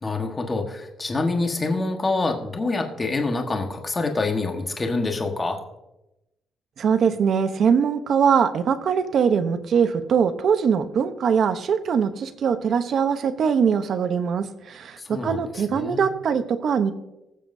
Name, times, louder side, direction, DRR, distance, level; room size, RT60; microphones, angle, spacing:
voice 1, 0.0-5.6 15.0-16.1, left 3 dB, 25° left, 3 dB, 1.4 m, -26 dB
voice 2, 6.8-16.9, right 6 dB, 55° right, 10 dB, 0.8 m, -22 dB
20.0 x 7.5 x 2.7 m, 0.92 s
cardioid pair, 120°, 0 cm